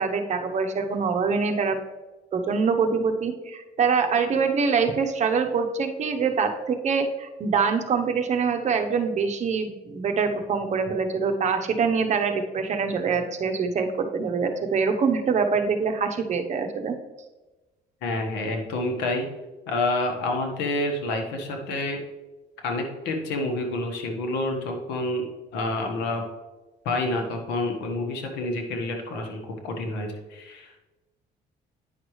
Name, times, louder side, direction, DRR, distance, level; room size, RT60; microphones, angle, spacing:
voice 1, 0.0-1.8 2.3-16.9, right 5 dB, 45° right, 6 dB, 0.9 m, -24 dB
voice 2, 18.0-19.3 19.7-22.0 22.6-25.2 25.5-26.2 26.8-30.8, left 2 dB, 90° left, 3 dB, 1.4 m, -28 dB
9.5 x 5.9 x 3.2 m, 1.1 s
cardioid pair, 110°, 17 cm